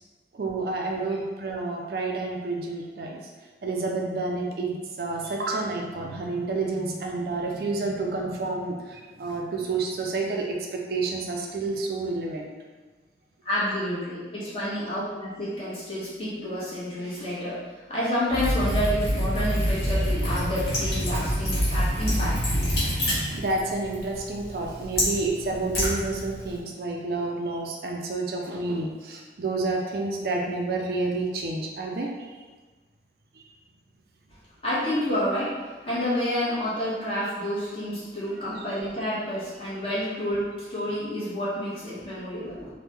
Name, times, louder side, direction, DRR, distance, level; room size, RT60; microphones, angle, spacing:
voice 1, 0.3-3.2 3.6-12.5 23.1-32.3 38.6-38.7, right 3 dB, 60° right, 0 dB, 0.4 m, -29 dB
voice 2, 13.4-17.6 17.9-22.6 34.6-42.7, left 1 dB, 30° left, -9 dB, 1.1 m, -29 dB
Liquid, 18.3-26.6, equal, 60° left, 1.3 m, -27 dB
3.4 x 2.1 x 3.2 m, 1.3 s
head